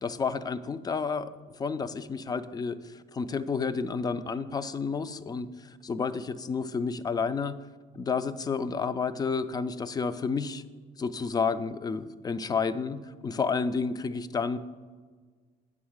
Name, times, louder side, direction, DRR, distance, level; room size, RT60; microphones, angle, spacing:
voice 1, 0.0-7.6 7.9-10.6 11.0-14.6, left 5 dB, 25° left, 14 dB, 0.3 m, -31 dB
8.6 x 3.6 x 6.3 m, 1.5 s
cardioid pair, 110°, 17 cm